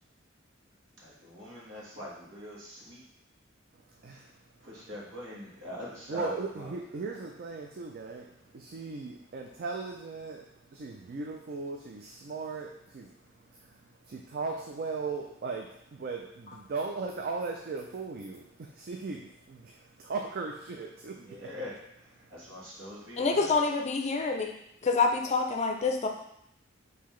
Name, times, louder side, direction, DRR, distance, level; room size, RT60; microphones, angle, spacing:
voice 1, 1.0-3.0 4.1-4.3 4.6-6.8 7.0-7.2 21.2-23.5, left 1 dB, 75° right, -5 dB, 1.4 m, -43 dB
voice 2, 6.1-8.3 8.5-10.4 10.7-13.1 14.1-21.4, right 4 dB, 50° right, 2 dB, 0.4 m, -37 dB
voice 3, 23.2-24.6 24.8-26.1, left 4 dB, 35° left, 3 dB, 0.4 m, -27 dB
5.6 x 2.8 x 3.1 m, 0.77 s
head